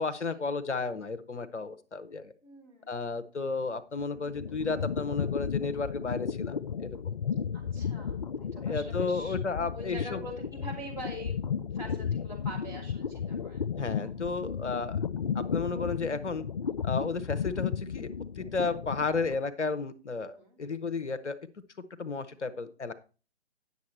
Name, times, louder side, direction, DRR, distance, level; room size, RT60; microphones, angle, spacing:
voice 1, 0.0-2.3 2.9-6.9 8.6-10.2 13.8-15.0 15.3-16.4 16.8-18.1 18.4-21.4 22.0-22.9, left 4 dB, 75° left, 10 dB, 0.9 m, -33 dB
voice 2, 2.4-2.9 7.5-9.4 9.7-11.4 11.7-14.1 16.6-16.8 20.3-20.6, right 1 dB, 10° right, -5 dB, 2.8 m, -45 dB
sound 1, 4.0-19.4, left 7 dB, 45° left, 0.4 m, -34 dB
9.6 x 6.7 x 4.3 m, 0.34 s
figure-of-eight pair, 135°, 35 cm